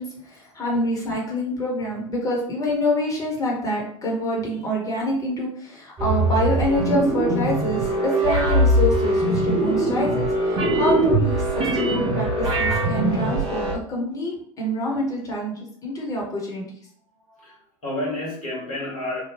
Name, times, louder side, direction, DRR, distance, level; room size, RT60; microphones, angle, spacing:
voice 1, 0.0-16.7, left 1 dB, 20° left, -3 dB, 1.1 m, -26 dB
sound 1, 6.0-13.7, right 1 dB, 30° right, 0.9 m, -22 dB
voice 2, 17.1-19.2, left 1 dB, 80° left, -5 dB, 1.4 m, -32 dB
2.9 x 2.2 x 3.4 m, 0.65 s
figure-of-eight pair, 85°, 18 cm